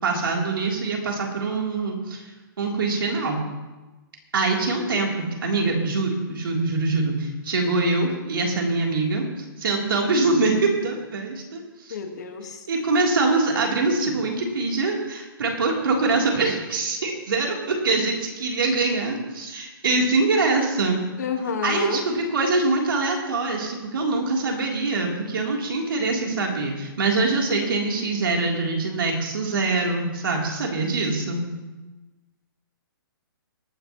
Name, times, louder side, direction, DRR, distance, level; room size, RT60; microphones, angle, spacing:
voice 1, 0.0-2.3 2.6-3.4 4.3-5.1 5.4-9.2 9.6-12.0 12.7-21.0 21.6-31.4, right 3 dB, 70° right, -1 dB, 3.3 m, -24 dB
voice 2, 11.9-12.6 21.2-22.0, left 6 dB, 45° left, 4 dB, 1.6 m, -29 dB
20.5 x 10.0 x 3.1 m, 1.1 s
hypercardioid pair, 180°, 12 cm